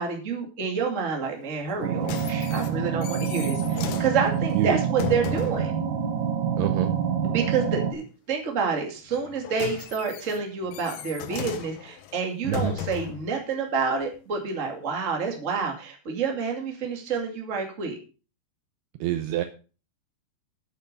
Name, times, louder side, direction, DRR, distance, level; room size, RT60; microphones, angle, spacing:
voice 1, 0.0-5.7 7.2-18.0, right 5 dB, 25° right, 2 dB, 1.7 m, -28 dB
sound 1, 1.7-5.7 9.1-13.3 14.0-14.1, left 11 dB, 80° left, 2.0 m, -36 dB
sound 2, 1.8-7.9, right 7 dB, 60° right, 2.1 m, -27 dB
voice 2, 6.6-6.9 12.4-12.8 19.0-19.4, right 12 dB, 75° right, 8 dB, 2.5 m, -26 dB
8.9 x 8.9 x 5.4 m, 0.35 s
omnidirectional pair, 5.1 m